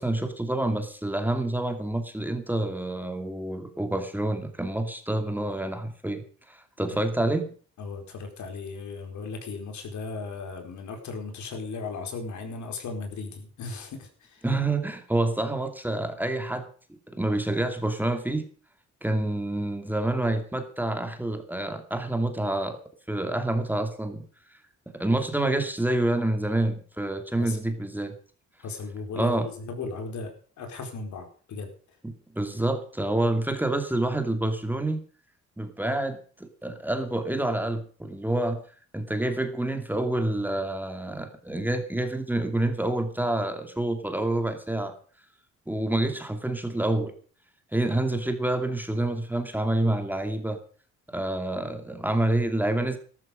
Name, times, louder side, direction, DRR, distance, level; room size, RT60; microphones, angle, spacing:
voice 1, 0.0-7.5 14.4-16.7 17.1-18.5 19.0-22.8 23.1-24.2 24.9-28.2 29.1-29.5 32.0-35.0 35.6-38.6 38.9-44.9 45.7-47.1 47.7-50.6 51.1-53.0, right 1 dB, 5° right, 7 dB, 2.4 m, -28 dB
voice 2, 7.8-14.4 27.4-27.6 28.6-31.7, left 4 dB, 70° left, 5 dB, 4.6 m, -36 dB
13.5 x 13.0 x 5.1 m, 0.42 s
cardioid pair, 90°, 30 cm